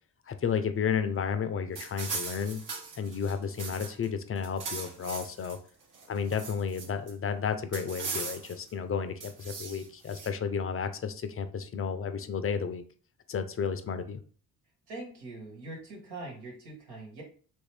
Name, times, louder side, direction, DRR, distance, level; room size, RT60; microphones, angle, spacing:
voice 1, 0.3-2.6 3.0-5.6 6.1-12.8 13.3-14.2, left 6 dB, 35° left, 9 dB, 0.5 m, -32 dB
sound 1, 1.8-4.1 4.4-5.6 5.9-7.1 7.7-8.7 9.2-10.3, right 4 dB, 50° right, 0.9 m, -39 dB
voice 2, 14.9-17.2, right 2 dB, 75° right, -1 dB, 1.5 m, -42 dB
3.1 x 2.7 x 3.3 m, 0.43 s
supercardioid pair, 55°, 40 cm